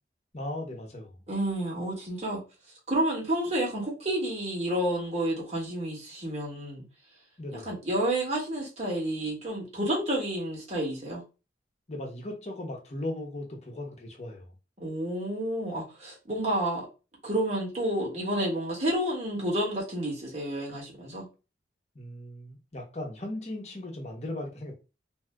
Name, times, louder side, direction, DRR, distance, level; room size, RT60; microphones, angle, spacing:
voice 1, 0.3-1.1 7.4-7.7 11.9-14.5 21.9-24.7, left 1 dB, 40° left, 0.9 m, -37 dB
voice 2, 1.3-2.4 2.9-6.8 7.5-11.2 14.8-16.9 17.2-21.2, right 1 dB, 40° right, 1.5 m, -30 dB
2.7 x 2.4 x 3.4 m
head